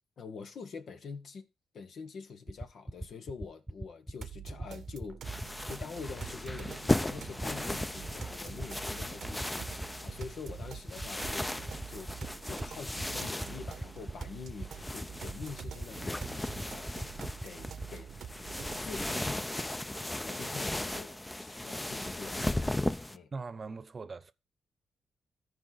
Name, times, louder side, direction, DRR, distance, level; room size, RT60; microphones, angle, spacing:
voice 1, 0.2-1.5 1.7-12.1 12.4-17.1 17.4-18.1 18.8-22.6 23.1-23.3, left 5 dB, 70° left, 1.3 m, -45 dB
sound 1, 2.5-17.9, right 1 dB, 10° right, 0.9 m, -39 dB
sound 2, 4.2-19.2, right 8 dB, 75° right, 0.8 m, -47 dB
sound 3, 5.2-23.2, left 1 dB, 15° left, 0.6 m, -37 dB
voice 2, 23.3-24.3, right 4 dB, 45° right, 0.8 m, -41 dB
13.5 x 4.9 x 3.9 m
supercardioid pair, 55°, 0 cm